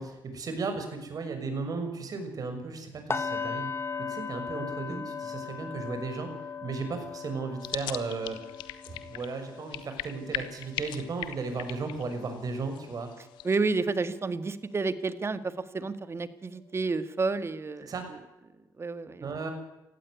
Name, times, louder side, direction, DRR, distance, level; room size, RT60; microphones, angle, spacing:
voice 1, 0.0-3.7 4.1-6.3 6.6-8.4 8.9-13.1 17.9-18.1 19.2-19.5, right 4 dB, 50° right, 6 dB, 6.3 m, -35 dB
sound 1, 3.1-13.0 13.4-13.6 14.1-14.2, left 5 dB, 35° left, 1.9 m, -39 dB
sound 2, 7.6-13.6, left 13 dB, 85° left, 1.3 m, -40 dB
voice 2, 13.4-17.9 18.8-19.3, right 3 dB, 35° right, 12 dB, 1.9 m, -30 dB
18.0 x 15.0 x 9.7 m, 0.97 s
supercardioid pair, 60°, 8 cm